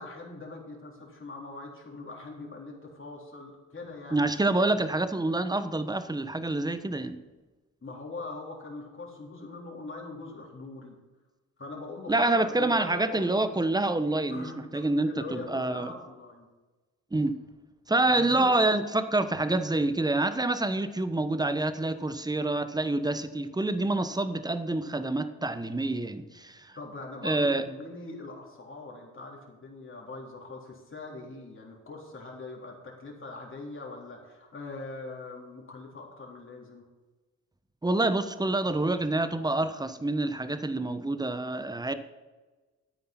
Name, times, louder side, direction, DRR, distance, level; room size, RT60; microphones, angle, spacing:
voice 1, 0.0-4.3 7.8-11.0 11.6-13.5 14.3-16.5 18.1-18.6 26.8-36.8, left 3 dB, 30° left, -1 dB, 3.9 m, -42 dB
voice 2, 4.1-7.2 12.1-14.4 14.7-15.9 17.1-17.3 17.9-26.7 27.2-27.6 37.8-41.9, right 2 dB, 10° right, 11 dB, 1.0 m, -27 dB
13.5 x 9.1 x 4.4 m, 1.2 s
figure-of-eight pair, 45°, 40 cm